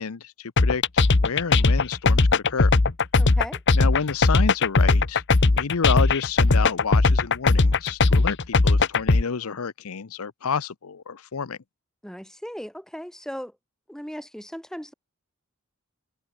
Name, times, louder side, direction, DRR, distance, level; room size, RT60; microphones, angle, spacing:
voice 1, 0.0-2.7 3.8-11.6, left 5 dB, 75° left, 0.7 m, -30 dB
sound 1, 0.6-9.2, left 3 dB, 55° left, 1.0 m, -18 dB
voice 2, 3.2-3.6 12.0-13.5 13.9-14.9, equal, ahead, 5.5 m, -37 dB
head